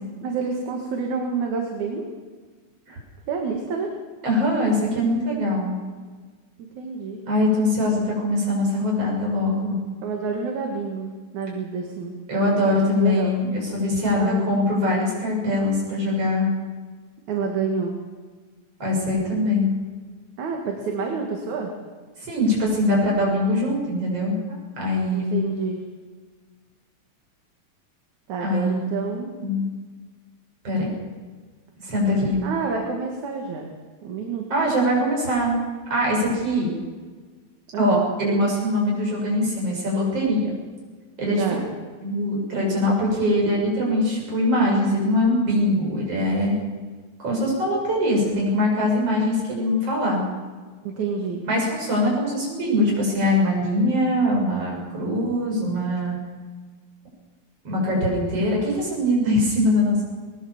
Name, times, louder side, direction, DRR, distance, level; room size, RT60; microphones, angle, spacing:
voice 1, 0.2-2.1 3.3-3.9 6.6-7.2 10.0-11.1 11.3-12.1 12.7-13.3 14.2-14.4 14.9-15.0 17.3-17.9 20.4-21.7 25.1-25.8 28.3-29.3 32.4-33.7 34.0-34.4 37.7-38.0 41.4-41.6 50.8-51.4, right 5 dB, 75° right, 1 dB, 3.3 m, -28 dB
voice 2, 4.2-5.7 7.3-9.8 12.3-16.5 18.8-19.7 22.2-25.4 28.4-28.9 29.4-29.7 30.6-30.9 31.8-32.4 34.5-35.5 35.9-36.7 37.8-40.6 41.2-41.6 42.0-46.5 47.2-50.2 51.5-56.2 57.6-60.0, left 1 dB, 50° right, -2 dB, 8.1 m, -22 dB
21.5 x 20.5 x 7.3 m, 1.5 s
omnidirectional pair, 3.4 m